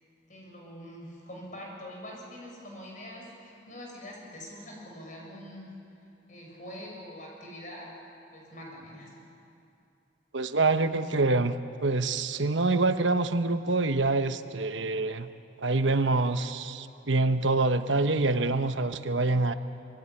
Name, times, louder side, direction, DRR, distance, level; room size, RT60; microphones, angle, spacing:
voice 1, 0.3-5.7 6.3-7.9 8.3-9.2, equal, 45° left, -1 dB, 6.9 m, -44 dB
voice 2, 10.3-11.5 11.8-15.3 15.6-19.5, right 3 dB, 90° right, 9 dB, 1.1 m, -26 dB
24.5 x 23.0 x 9.9 m, 2.7 s
head